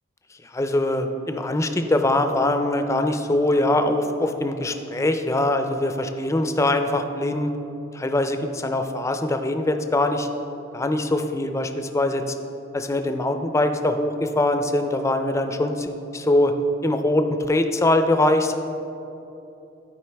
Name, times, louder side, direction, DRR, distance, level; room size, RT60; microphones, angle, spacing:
voice 1, 0.4-7.5 7.9-10.3 10.7-12.3 12.7-16.5 16.8-18.5, left 1 dB, 15° left, 7 dB, 0.4 m, -22 dB
13.0 x 4.8 x 3.4 m, 2.9 s
head